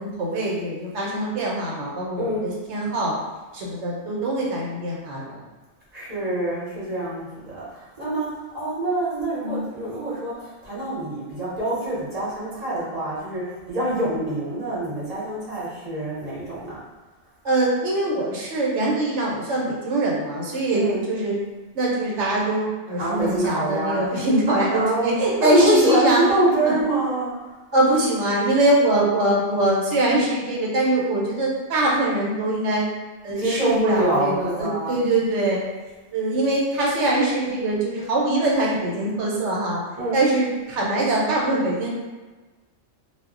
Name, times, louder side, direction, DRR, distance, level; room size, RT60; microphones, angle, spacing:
voice 1, 0.0-3.1 3.5-5.4 9.4-9.6 17.4-21.4 21.7-26.2 26.6-26.7 27.7-32.9 33.2-35.6 36.1-39.8 40.1-41.9, right 1 dB, 65° right, -4 dB, 1.0 m, -23 dB
voice 2, 2.2-2.5 5.9-8.3 8.5-16.8 20.7-21.0 23.0-24.0 24.5-25.0 25.4-27.3 33.4-35.0 40.0-40.2, right 1 dB, 35° right, -8 dB, 0.8 m, -25 dB
2.3 x 2.1 x 3.7 m, 1.3 s
omnidirectional pair, 1.3 m